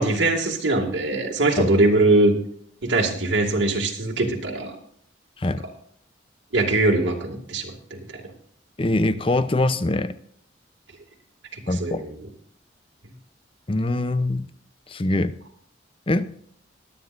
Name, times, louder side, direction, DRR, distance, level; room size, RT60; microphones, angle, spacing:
voice 1, 0.0-2.3 2.8-4.8 6.5-8.2 11.8-12.1, right 2 dB, 85° right, 0 dB, 2.1 m, -21 dB
voice 2, 8.8-10.1 11.7-12.0 13.7-14.5 14.9-15.4 16.1-16.3, left 2 dB, 30° left, 12 dB, 0.6 m, -23 dB
22.5 x 9.4 x 2.6 m, 0.62 s
head